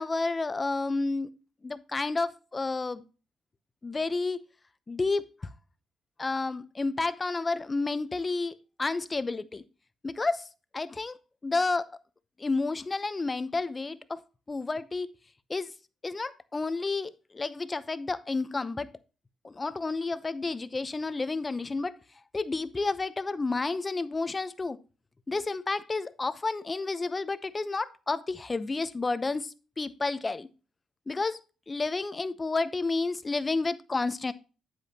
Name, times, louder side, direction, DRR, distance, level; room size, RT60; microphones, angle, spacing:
voice 1, 0.0-1.3 1.6-3.0 3.8-4.4 4.9-5.5 6.2-9.6 10.0-10.4 10.7-11.2 11.4-11.9 12.4-14.2 14.5-15.1 15.5-15.7 16.0-18.9 19.4-21.9 22.3-24.8 25.3-30.5 31.1-31.4 31.7-34.3, left 3 dB, 25° left, 0.8 m, -30 dB
9.0 x 8.1 x 2.9 m
cardioid pair, 90°, 0 cm